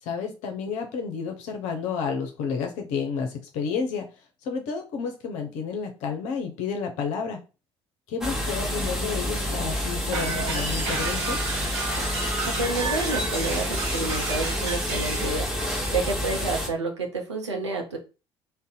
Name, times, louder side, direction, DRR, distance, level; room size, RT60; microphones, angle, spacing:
voice 1, 0.0-4.1 4.4-7.4 8.1-11.4, left 6 dB, 55° left, 4 dB, 0.5 m, -31 dB
sound 1, 8.2-16.7, equal, 5° right, 1.0 m, -29 dB
sound 2, 10.1-15.3, right 3 dB, 50° right, 1.1 m, -31 dB
voice 2, 12.6-15.5 15.9-18.0, right 3 dB, 80° right, 3 dB, 0.6 m, -29 dB
2.5 x 2.1 x 3.8 m, 0.31 s
figure-of-eight pair, 50°, 14 cm